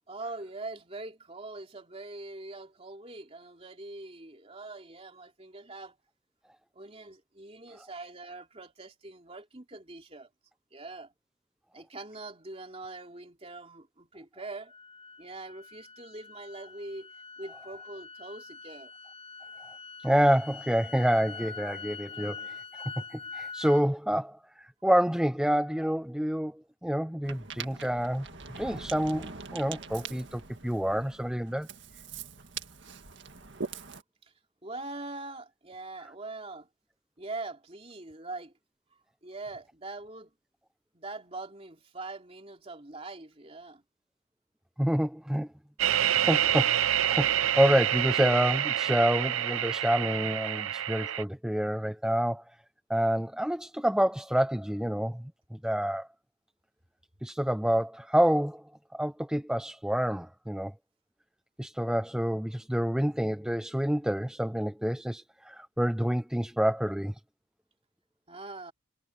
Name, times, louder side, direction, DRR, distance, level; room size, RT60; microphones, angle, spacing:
voice 1, 0.1-5.9 6.7-10.3 10.7-11.1 11.7-14.7 15.2-17.1 17.4-18.9 34.6-36.7 37.2-38.5 39.2-40.3 40.9-43.8 68.3-68.7, right 2 dB, 30° right, 3.3 m, -43 dB
sound 1, 14.7-23.8, left 5 dB, 30° left, 1.3 m, -44 dB
voice 2, 20.0-22.8 23.1-31.7 44.8-45.5 46.2-52.4 52.9-56.1 57.2-58.6 58.9-60.7 61.6-67.1, equal, 5° right, 0.5 m, -28 dB
Ocean, 27.2-34.0, right 5 dB, 55° right, 1.9 m, -42 dB
sound 2, 45.8-51.2, right 11 dB, 75° right, 0.6 m, -27 dB
head